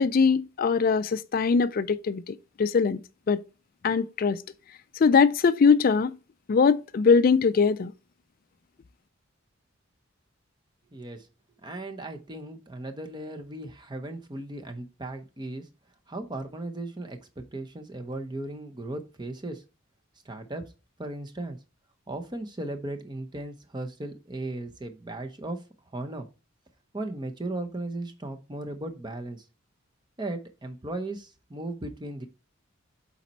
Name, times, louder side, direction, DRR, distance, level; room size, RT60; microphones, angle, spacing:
voice 1, 0.0-3.0 3.3-3.4 3.8-4.4 5.0-6.1 6.5-7.9, left 5 dB, 45° left, 0.3 m, -22 dB
voice 2, 10.9-11.3 11.6-15.6 16.1-19.6 20.2-20.6 21.0-21.6 22.1-25.6 25.9-26.3 26.9-29.4 30.2-32.2, right 2 dB, 20° right, 0.7 m, -36 dB
7.3 x 4.2 x 4.1 m
head